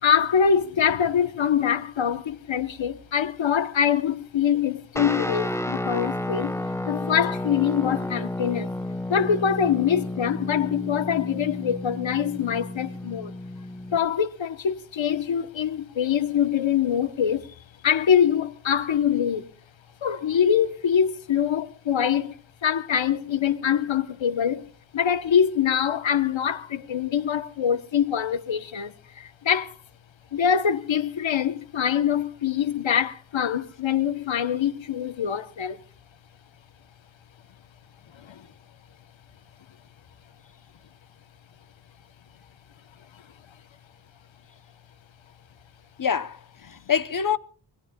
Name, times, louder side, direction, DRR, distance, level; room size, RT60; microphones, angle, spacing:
voice 1, 0.0-6.6 6.9-8.7 9.1-13.4 13.9-17.5 17.8-19.4 20.0-22.4 22.6-24.7 24.9-29.7 30.3-35.8 38.1-38.5, left 8 dB, 90° left, 1.1 m, -24 dB
Guitar, 5.0-14.1, left 1 dB, 5° left, 1.0 m, -31 dB
voice 2, 46.0-47.4, left 7 dB, 45° left, 0.8 m, -26 dB
24.5 x 20.0 x 2.3 m
wide cardioid pair, 105°, 45 cm